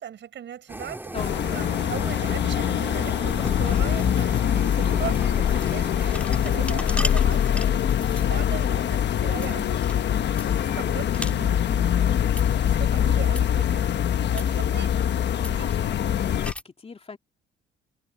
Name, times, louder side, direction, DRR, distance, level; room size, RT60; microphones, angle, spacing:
voice 1, 0.0-15.9, right 10 dB, 65° right, 4.7 m, -39 dB
sound 1, 0.7-7.2, right 1 dB, 10° right, 3.0 m, -39 dB
voice 2, 1.1-1.5 10.7-11.0 15.2-17.2, left 4 dB, 30° left, 2.6 m, -41 dB
sound 2, 1.2-16.5, left 9 dB, 60° left, 1.2 m, -23 dB
sound 3, 2.8-16.6, left 1 dB, 5° left, 3.6 m, -40 dB
cardioid pair, 90°, 20 cm